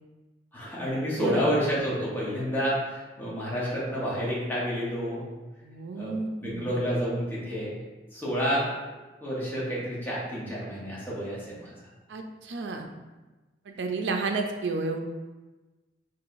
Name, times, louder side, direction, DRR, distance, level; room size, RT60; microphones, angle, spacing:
voice 1, 0.5-5.3 5.9-7.7 8.1-8.7 9.2-11.7, equal, 10° left, -7 dB, 1.0 m, -29 dB
voice 2, 1.1-1.5 5.6-6.7 12.1-12.9 13.7-15.0, right 3 dB, 85° right, 4 dB, 0.5 m, -31 dB
4.7 x 3.0 x 2.6 m, 1.2 s
head